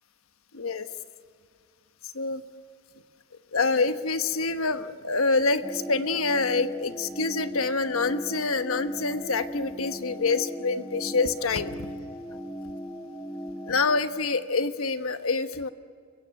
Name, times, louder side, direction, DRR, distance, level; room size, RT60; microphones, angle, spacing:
voice 1, 0.5-0.9 2.0-2.4 3.5-11.9 13.7-15.7, left 3 dB, 80° left, 10 dB, 1.2 m, -26 dB
sound 1, 5.6-14.0, equal, 15° left, 1.4 m, -38 dB
29.5 x 16.5 x 9.0 m, 2.3 s
head